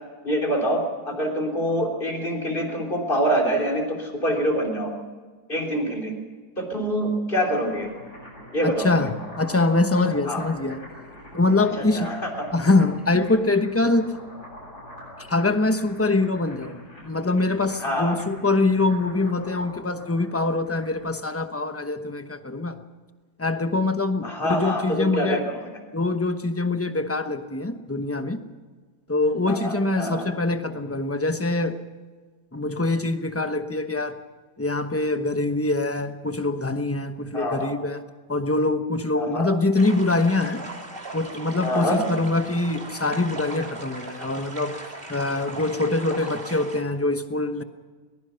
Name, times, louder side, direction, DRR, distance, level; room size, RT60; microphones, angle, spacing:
voice 1, 0.2-4.9 5.5-6.1 6.6-7.9 8.5-9.1 10.3-10.4 11.8-12.5 17.8-18.2 24.2-25.7 29.5-30.3 37.3-37.7 39.1-39.5 41.6-42.0, equal, 30° left, 1 dB, 3.7 m, -25 dB
sound 1, 7.3-21.2, left 1 dB, 75° left, 8.0 m, -44 dB
voice 2, 8.6-10.8 11.3-12.1 12.5-14.1 15.3-22.8 23.4-25.5 25.9-28.4 29.1-31.8 32.5-34.2 34.6-38.0 38.3-40.6 41.1-44.8 45.1-47.6, left 2 dB, 10° left, 8 dB, 0.8 m, -24 dB
sound 2, 39.8-46.8, right 2 dB, 35° right, 2.9 m, -38 dB
22.0 x 20.5 x 5.7 m, 1.4 s
omnidirectional pair, 1.7 m